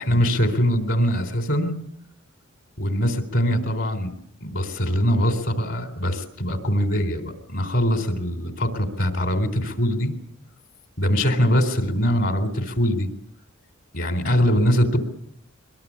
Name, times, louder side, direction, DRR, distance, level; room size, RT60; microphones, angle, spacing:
voice 1, 0.0-1.7 2.8-4.1 4.4-10.1 11.0-13.1 13.9-15.0, equal, 60° left, 7 dB, 3.9 m, -22 dB
23.5 x 22.0 x 8.5 m, 0.72 s
head